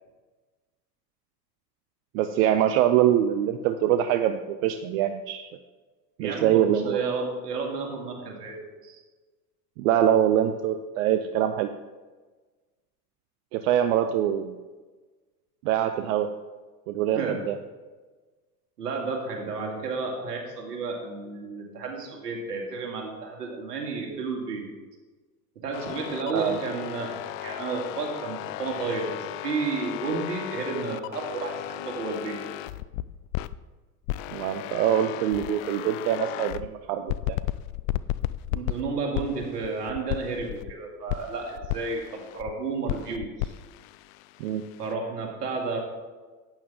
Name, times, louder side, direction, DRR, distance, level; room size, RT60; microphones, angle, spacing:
voice 1, 2.1-5.5 6.2-7.1 9.8-11.7 13.5-14.6 15.6-16.3 16.9-17.6 26.3-26.6 34.3-37.4 44.4-44.6, right 10 dB, 60° right, 8 dB, 0.7 m, -24 dB
voice 2, 6.2-9.0 17.1-17.4 18.8-24.7 25.6-32.4 38.5-43.5 44.8-45.8, right 4 dB, 75° right, 0 dB, 2.4 m, -32 dB
sound 1, 25.7-33.6 34.0-36.7 37.1-40.7 41.1-42.5 42.9-44.9, left 15 dB, 55° left, 0.5 m, -34 dB
12.0 x 9.0 x 3.6 m, 1.3 s
hypercardioid pair, 75°, 48 cm